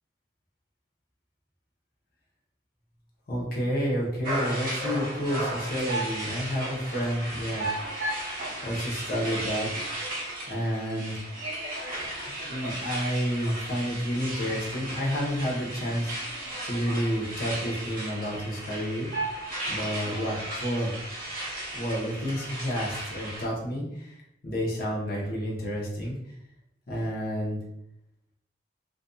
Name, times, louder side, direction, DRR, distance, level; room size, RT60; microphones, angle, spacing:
voice 1, 3.3-7.7 8.6-9.7 10.5-11.2 12.3-16.4 16.7-19.1 19.7-21.0 21.7-24.2 24.4-26.2 26.9-27.6, equal, 50° left, -3 dB, 0.8 m, -30 dB
sound 1, 4.2-23.4, right 1 dB, 45° right, 0.8 m, -35 dB
2.5 x 2.5 x 2.3 m, 0.79 s
head